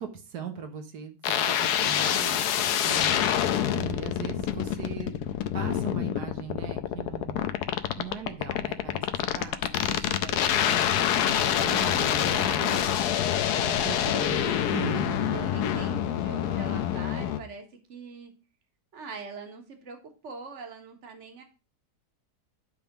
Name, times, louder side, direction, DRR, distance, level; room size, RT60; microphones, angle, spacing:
voice 1, 0.0-2.4 2.8-5.2 5.5-7.5 8.0-9.1 9.3-13.0 13.6-15.8, right 7 dB, 85° right, 5 dB, 1.6 m, -39 dB
sound 1, 1.2-17.4, left 10 dB, 90° left, 1.2 m, -26 dB
voice 2, 3.2-4.2 14.0-14.4 14.9-18.3 18.9-21.4, right 5 dB, 50° right, 4 dB, 1.6 m, -43 dB
10.5 x 3.6 x 5.8 m, 0.34 s
omnidirectional pair, 1.7 m